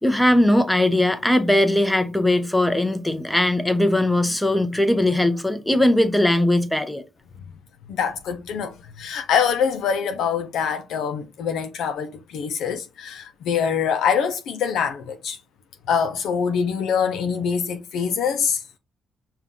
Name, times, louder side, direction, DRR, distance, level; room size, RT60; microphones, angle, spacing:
voice 1, 0.0-7.0, left 1 dB, 5° left, 0.8 m, -19 dB
voice 2, 7.9-15.4 15.9-18.6, left 7 dB, 80° left, 0.5 m, -24 dB
5.5 x 2.4 x 3.6 m
cardioid pair, 90°, 0 cm